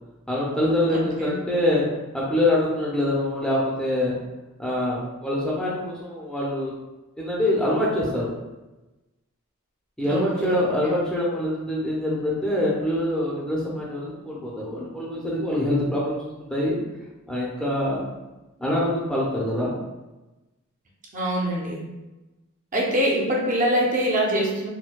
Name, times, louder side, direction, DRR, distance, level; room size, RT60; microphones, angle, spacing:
voice 1, 0.3-1.8 2.1-4.1 4.6-6.7 7.2-8.3 10.0-16.2 16.5-16.8 17.3-18.1 18.6-19.7, left 1 dB, 5° left, -6 dB, 0.5 m, -24 dB
voice 2, 0.9-1.4 10.0-10.9 21.1-21.8 22.7-24.7, equal, 35° right, -3 dB, 0.7 m, -24 dB
4.3 x 2.2 x 2.2 m, 1.1 s
head